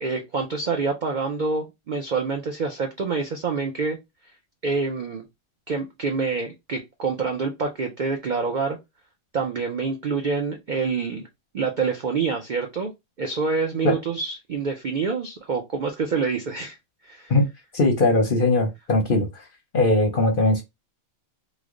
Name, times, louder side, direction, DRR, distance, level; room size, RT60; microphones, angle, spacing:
voice 1, 0.0-4.0 4.6-5.2 5.7-8.8 9.3-11.3 11.5-12.9 13.2-16.8 17.0-17.3, right 4 dB, 75° right, 0.4 m, -26 dB
voice 2, 17.7-19.4 19.7-20.6, left 2 dB, 50° left, 0.7 m, -20 dB
3.2 x 2.0 x 3.6 m
omnidirectional pair, 1.5 m